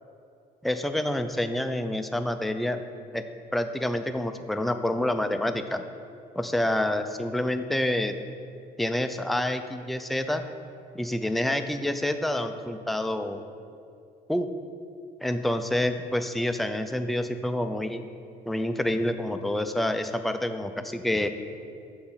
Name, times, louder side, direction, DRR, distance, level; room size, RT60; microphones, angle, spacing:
voice 1, 0.6-2.8 3.1-3.2 3.5-5.8 6.4-8.1 8.8-10.4 10.9-13.5 14.3-14.5 15.2-18.0 18.5-21.3, left 1 dB, ahead, 7 dB, 0.3 m, -28 dB
6.8 x 4.2 x 5.6 m, 2.4 s
cardioid pair, 110°, 17 cm